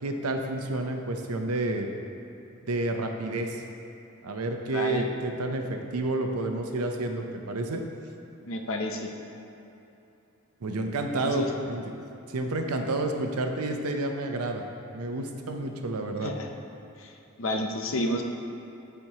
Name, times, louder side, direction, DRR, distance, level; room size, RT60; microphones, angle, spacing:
voice 1, 0.0-1.9 2.7-3.6 4.2-7.8 10.6-11.9 12.3-14.6 14.9-16.3, right 2 dB, 85° right, 4 dB, 0.7 m, -30 dB
voice 2, 4.7-5.0 8.4-9.1 11.2-11.5 16.2-16.5 17.0-17.1 17.4-18.2, left 1 dB, 60° left, 3 dB, 0.6 m, -30 dB
13.5 x 4.5 x 2.9 m, 2.9 s
head